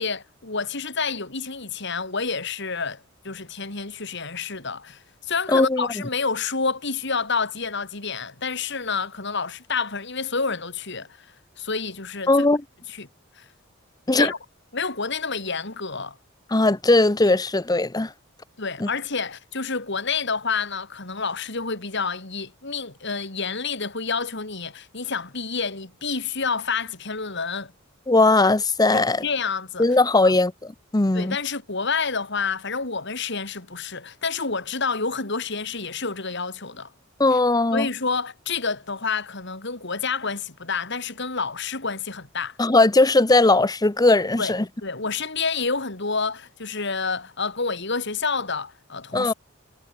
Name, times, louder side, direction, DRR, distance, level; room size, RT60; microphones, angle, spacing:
voice 1, 0.0-11.3 11.6-12.5 12.9-13.1 13.4-13.5 14.1-14.4 14.7-16.2 18.6-27.7 28.9-29.9 30.2-30.4 31.1-36.9 37.3-37.4 37.7-42.6 44.4-49.3, left 4 dB, 60° left, 4.0 m, -29 dB
voice 2, 5.5-5.9 12.3-12.6 14.1-14.3 16.5-18.1 18.8-18.9 28.1-29.2 29.8-31.4 37.2-37.9 42.6-44.6 49.1-49.3, left 2 dB, 20° left, 0.8 m, -19 dB
head